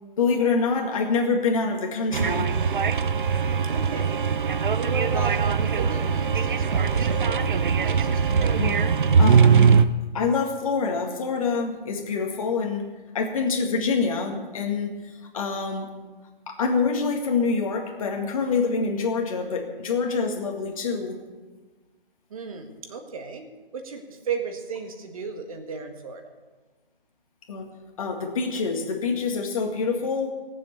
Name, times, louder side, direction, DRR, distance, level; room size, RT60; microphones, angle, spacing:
voice 1, 0.2-2.5 8.6-8.8 9.2-9.8 10.1-12.9 13.1-14.9 15.3-15.9 16.5-21.2 27.5-27.7 28.0-30.3, left 4 dB, 35° left, 2 dB, 2.0 m, -26 dB
sound 1, 2.1-9.8, right 6 dB, 60° right, 0.7 m, -21 dB
voice 2, 3.7-4.2 4.7-8.6 22.3-23.5 23.7-26.2, right 5 dB, 35° right, 5 dB, 1.8 m, -35 dB
19.0 x 7.7 x 6.9 m, 1.3 s
figure-of-eight pair, 155°, 29 cm